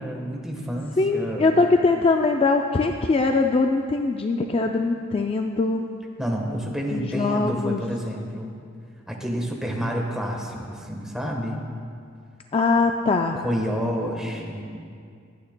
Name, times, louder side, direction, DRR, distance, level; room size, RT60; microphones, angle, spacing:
voice 1, 0.0-1.5 6.2-8.5 9.1-11.6 13.4-14.6, equal, 5° right, 0 dB, 1.2 m, -29 dB
voice 2, 1.0-5.8 6.9-7.8 12.5-13.4, left 3 dB, 30° left, 4 dB, 0.3 m, -22 dB
22.0 x 9.2 x 2.2 m, 2.3 s
head